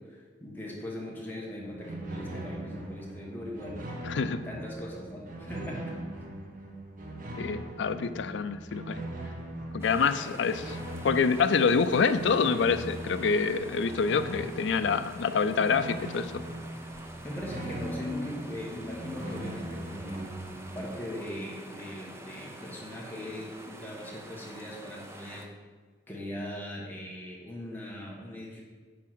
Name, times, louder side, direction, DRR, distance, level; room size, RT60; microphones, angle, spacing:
voice 1, 0.0-3.8 4.4-6.0 10.0-10.3 17.2-20.3 20.7-25.5 26.1-28.6, left 1 dB, 10° left, -3 dB, 1.5 m, -39 dB
sound 1, 1.6-20.8, right 1 dB, 45° right, 0.9 m, -40 dB
voice 2, 4.0-4.4 7.4-9.0 9.7-10.8 11.0-16.4, left 5 dB, 75° left, 11 dB, 0.4 m, -26 dB
sound 2, 9.8-25.5, right 1 dB, 15° right, 0.6 m, -47 dB
9.3 x 3.6 x 6.0 m, 1.5 s
head